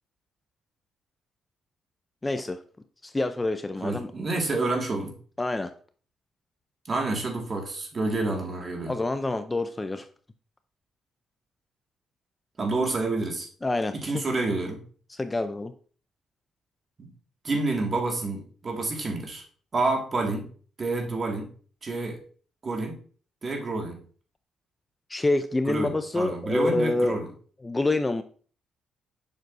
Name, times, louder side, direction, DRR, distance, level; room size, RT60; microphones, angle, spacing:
voice 1, 2.2-2.6 3.0-4.1 5.4-5.7 8.9-10.1 13.6-14.3 15.1-15.7 25.1-27.2 27.6-28.2, left 2 dB, 20° left, 10 dB, 0.5 m, -27 dB
voice 2, 3.8-5.1 6.9-8.9 12.6-13.5 14.0-14.8 17.0-17.1 17.4-19.4 19.7-20.5 20.8-21.5 21.8-22.2 22.6-23.0 23.4-24.0 25.7-27.3, right 2 dB, 35° right, 2 dB, 1.9 m, -28 dB
7.4 x 6.0 x 2.6 m, 0.42 s
cardioid pair, 90°, 0 cm